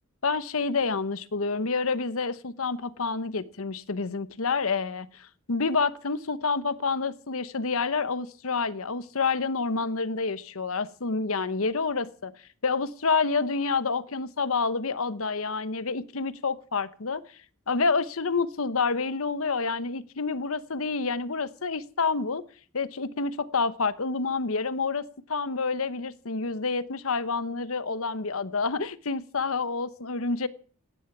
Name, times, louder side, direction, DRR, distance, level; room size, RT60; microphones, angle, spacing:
voice 1, 0.2-12.3 12.6-17.2 17.7-22.4 22.7-25.0 25.3-30.5, left 4 dB, 75° left, 1.0 m, -28 dB
16.5 x 11.0 x 6.0 m
head